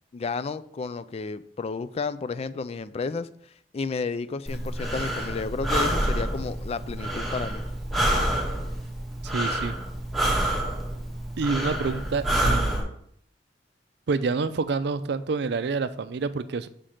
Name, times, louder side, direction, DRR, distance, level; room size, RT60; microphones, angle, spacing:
voice 1, 0.1-3.3 3.7-7.6, left 4 dB, 35° left, 14 dB, 0.3 m, -32 dB
Breathing, 4.5-12.8, right 1 dB, ahead, 1.6 m, -27 dB
voice 2, 9.2-9.7 11.4-12.9 14.1-16.7, right 4 dB, 65° right, 13 dB, 0.4 m, -28 dB
5.9 x 5.1 x 5.0 m, 0.65 s
head